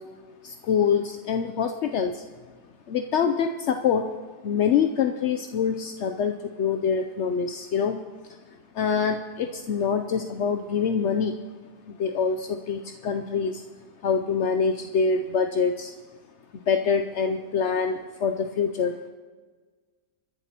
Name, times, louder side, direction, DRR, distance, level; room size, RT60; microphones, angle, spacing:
voice 1, 0.4-2.2 2.9-4.0 4.4-8.0 8.7-11.3 11.9-13.6 14.0-15.9 16.7-19.0, left 6 dB, 65° left, 5 dB, 0.7 m, -25 dB
29.0 x 11.0 x 2.9 m, 1.5 s
omnidirectional pair, 1.7 m